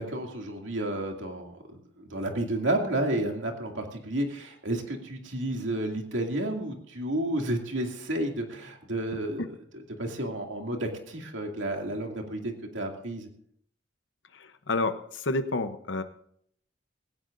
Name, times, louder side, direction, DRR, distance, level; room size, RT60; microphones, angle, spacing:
voice 1, 0.0-9.5 10.0-13.3, right 1 dB, 85° right, 2 dB, 2.5 m, -31 dB
voice 2, 14.3-16.0, left 2 dB, 75° left, 9 dB, 0.9 m, -30 dB
19.0 x 17.0 x 2.6 m, 0.65 s
head